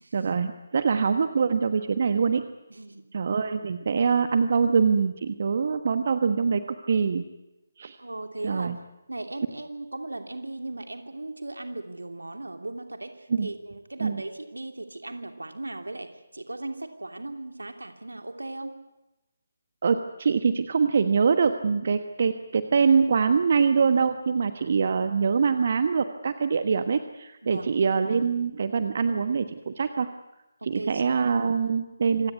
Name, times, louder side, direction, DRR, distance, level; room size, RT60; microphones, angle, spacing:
voice 1, 0.1-2.4 3.1-6.6 6.9-7.2 7.8-8.0 8.4-8.8 13.3-13.5 14.0-14.2 19.8-30.1 30.6-32.3, right 5 dB, 45° right, 9 dB, 1.3 m, -24 dB
voice 2, 2.7-3.0 8.0-8.7 9.1-18.7 27.4-27.7 30.6-31.0, right 2 dB, 75° right, 7 dB, 2.8 m, -37 dB
26.5 x 17.0 x 9.5 m, 0.98 s
figure-of-eight pair, 145°, 0 cm